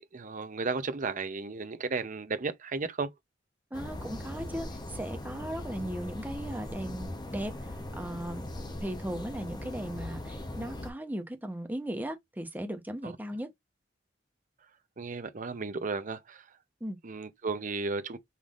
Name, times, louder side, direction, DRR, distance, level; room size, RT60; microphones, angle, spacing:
voice 1, 0.0-3.1 13.0-13.1 15.0-16.4 17.0-18.2, right 4 dB, 45° right, 0.7 m, -34 dB
sound 1, 3.7-10.9, left 1 dB, 25° left, 0.8 m, -40 dB
voice 2, 3.7-8.5 8.8-13.5 16.8-17.0, right 1 dB, 10° right, 0.9 m, -37 dB
5.5 x 3.3 x 2.4 m
head